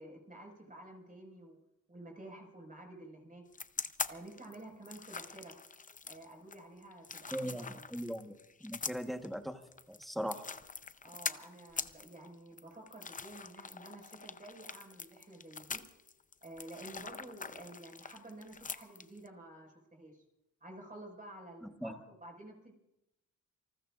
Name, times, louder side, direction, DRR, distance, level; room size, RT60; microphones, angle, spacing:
voice 1, 0.0-1.6 1.9-3.5 4.1-5.6 6.0-7.8 11.0-15.8 16.4-20.2 20.6-22.7, right 1 dB, 25° right, 1 dB, 5.3 m, -51 dB
sound 1, 3.5-19.3, left 5 dB, 25° left, 0.7 m, -43 dB
voice 2, 7.3-9.6 9.9-10.4 21.6-22.0, equal, ahead, 6 dB, 1.2 m, -40 dB
28.0 x 19.5 x 2.5 m, 0.87 s
cardioid pair, 100°, 31 cm